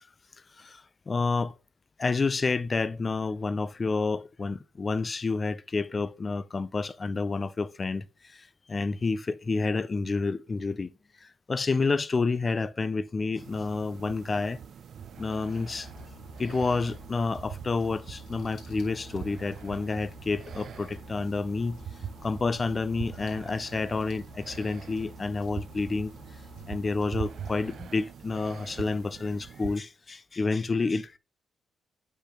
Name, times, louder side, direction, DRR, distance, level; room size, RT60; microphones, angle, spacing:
voice 1, 0.6-1.5 2.0-8.1 8.7-10.9 11.2-14.6 15.2-15.9 16.4-21.8 22.2-26.1 26.7-31.2, left 4 dB, 30° left, 0.4 m, -29 dB
sound 1, 13.4-29.8, right 8 dB, 60° right, 0.5 m, -43 dB
sound 2, 15.1-27.8, left 1 dB, 70° left, 1.7 m, -49 dB
8.4 x 5.2 x 2.9 m
cardioid pair, 115°, 0 cm